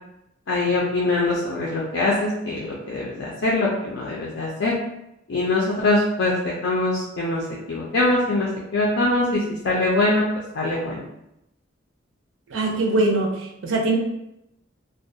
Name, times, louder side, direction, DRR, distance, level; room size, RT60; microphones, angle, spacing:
voice 1, 0.5-4.7 5.3-7.4 7.7-10.2 10.5-11.0, left 2 dB, 75° left, -4 dB, 0.4 m, -23 dB
voice 2, 12.5-14.0, right 2 dB, 75° right, 1 dB, 0.5 m, -22 dB
2.3 x 2.1 x 2.6 m, 0.85 s
head